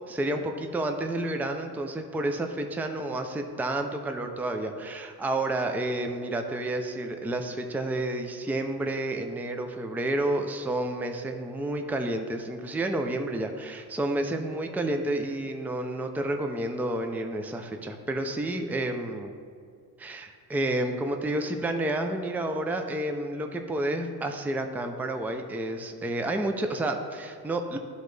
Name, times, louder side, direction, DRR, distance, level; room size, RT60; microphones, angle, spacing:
voice 1, 0.1-19.3 20.0-27.8, right 1 dB, 5° right, 5 dB, 0.4 m, -30 dB
11.0 x 4.0 x 3.2 m, 2.2 s
cardioid pair, 95°, 37 cm